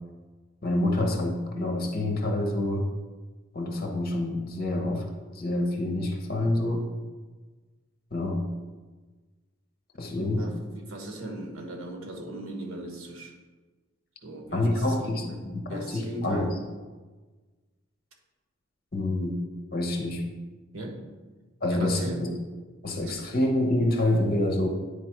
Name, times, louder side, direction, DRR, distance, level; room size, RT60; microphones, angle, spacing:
voice 1, 0.6-2.9 3.5-5.1 5.3-6.8 8.1-8.5 10.0-10.5 14.5-16.6 18.9-19.4 19.7-20.2 21.6-22.3 22.8-24.7, left 1 dB, 45° left, 3 dB, 1.0 m, -27 dB
voice 2, 10.1-13.3 14.2-15.4 15.7-16.6 20.7-21.1 21.7-22.2, right 1 dB, 85° right, 2 dB, 1.2 m, -38 dB
9.5 x 3.5 x 4.6 m, 1.3 s
head